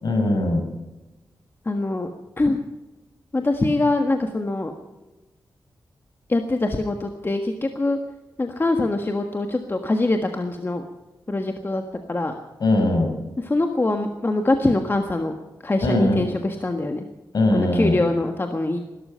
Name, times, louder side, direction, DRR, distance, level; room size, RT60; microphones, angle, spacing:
voice 1, 0.0-0.6 12.6-13.1 15.8-16.3 17.3-18.0, left 1 dB, 60° left, 4 dB, 5.7 m, -20 dB
voice 2, 1.6-2.1 2.4-2.6 3.3-4.7 6.3-8.0 8.4-10.8 11.3-11.8 12.1-12.3 13.4-15.3 15.6-17.0 17.5-18.8, left 2 dB, 30° left, 5 dB, 1.5 m, -23 dB
20.0 x 12.5 x 5.6 m, 1.1 s
wide cardioid pair, 90°, 8 cm